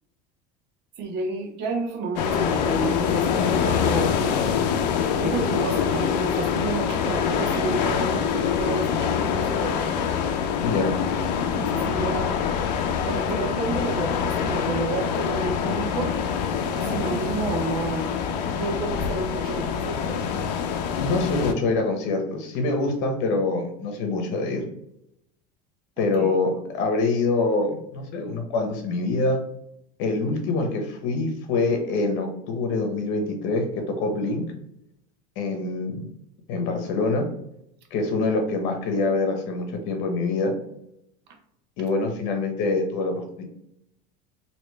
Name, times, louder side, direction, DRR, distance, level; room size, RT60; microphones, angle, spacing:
voice 1, 1.0-4.1 5.2-9.8 11.4-12.3 13.0-16.2 16.7-18.1 18.6-20.2 26.0-26.4, right 3 dB, 55° right, 3 dB, 0.9 m, -30 dB
sound 1, 2.2-21.5, left 7 dB, 85° left, 0.5 m, -25 dB
voice 2, 10.6-10.9 21.0-24.6 26.0-29.4 30.0-34.4 35.4-36.0 36.5-37.3 37.9-40.5 41.8-43.4, left 3 dB, 65° left, 4 dB, 1.0 m, -25 dB
3.1 x 2.9 x 3.2 m, 0.79 s
supercardioid pair, 125°, 21 cm